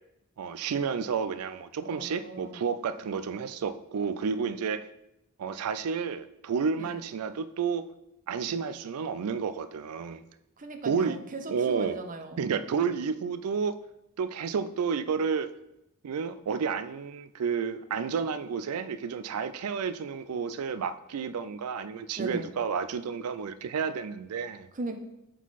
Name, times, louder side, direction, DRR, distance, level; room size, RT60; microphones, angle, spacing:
voice 1, 0.4-4.9 5.4-7.9 8.3-10.2 10.8-11.2 11.5-12.0 12.4-13.8 14.2-15.5 16.0-24.7, right 6 dB, 85° right, 0.4 m, -31 dB
voice 2, 1.8-2.6 6.8-6.9 10.6-12.4 22.2-22.5 24.7-25.0, right 2 dB, 35° right, 0.6 m, -38 dB
7.2 x 3.9 x 4.1 m
head